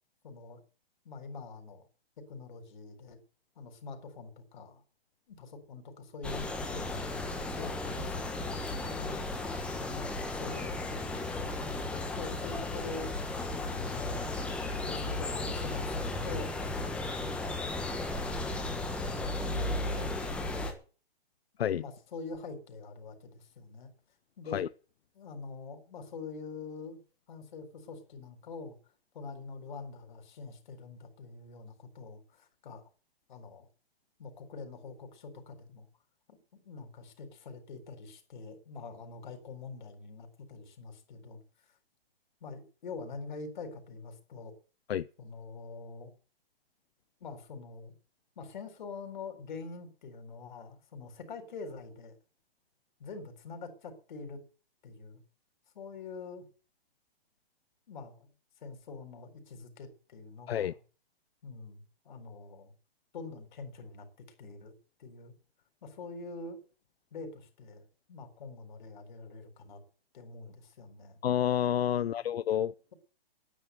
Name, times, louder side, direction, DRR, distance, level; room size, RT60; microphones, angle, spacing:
voice 1, 0.2-0.6 1.0-1.9 2.2-3.2 3.6-4.8 5.3-7.3 7.6-9.2 9.9-13.1 13.7-16.5 17.2-17.5 18.6-20.7 21.8-23.9 24.4-24.6 25.1-27.0 27.3-28.8 29.1-32.8 33.3-33.7 34.2-35.9 36.3-41.4 41.7-41.8 42.4-44.5 45.2-46.1 47.2-47.9 48.4-52.1 53.0-54.4 54.8-55.2 55.7-56.4 57.9-58.3 58.6-60.8 61.4-62.7 63.1-64.1 64.4-64.7 65.0-65.3 65.8-66.6 67.1-69.8 70.1-71.2 71.9-72.3, left 4 dB, 50° left, 4.2 m, -45 dB
sound 1, 6.2-20.7, left 2 dB, 5° left, 1.4 m, -35 dB
voice 2, 71.2-72.7, left 10 dB, 80° left, 0.6 m, -29 dB
10.5 x 9.6 x 9.1 m
hypercardioid pair, 165°, 30 cm